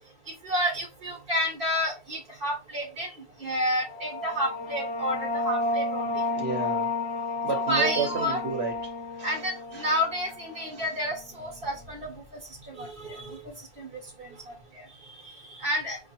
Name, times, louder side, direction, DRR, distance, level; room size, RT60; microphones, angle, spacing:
voice 1, 0.3-3.1 3.4-6.1 7.7-8.4 9.2-13.4 13.8-13.9 14.2-16.0, equal, 60° right, 1.3 m, -30 dB
sound 1, 3.7-11.0, left 2 dB, 85° left, 0.9 m, -31 dB
voice 2, 6.3-6.9 7.4-9.5 9.7-10.0 10.7-10.9 14.3-14.5, right 5 dB, 75° right, 1.2 m, -32 dB
5.5 x 2.4 x 2.8 m
omnidirectional pair, 1.1 m